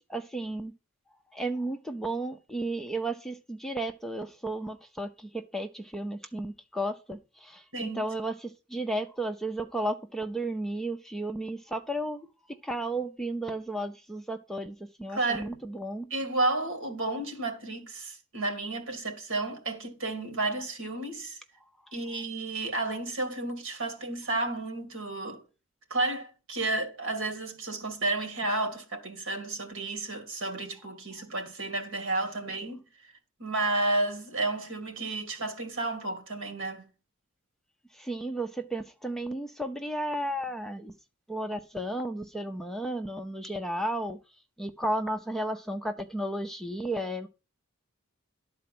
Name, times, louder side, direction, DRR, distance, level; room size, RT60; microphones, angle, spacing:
voice 1, 0.1-0.7 1.3-12.3 12.6-16.1 38.0-40.9 41.3-44.2 44.6-47.3, right 1 dB, ahead, 0.6 m, -33 dB
voice 2, 7.7-8.1 15.1-15.6 16.1-21.4 21.9-25.4 25.9-32.8 33.4-36.8, right 2 dB, 65° right, 2.3 m, -32 dB
12.0 x 4.3 x 7.6 m
head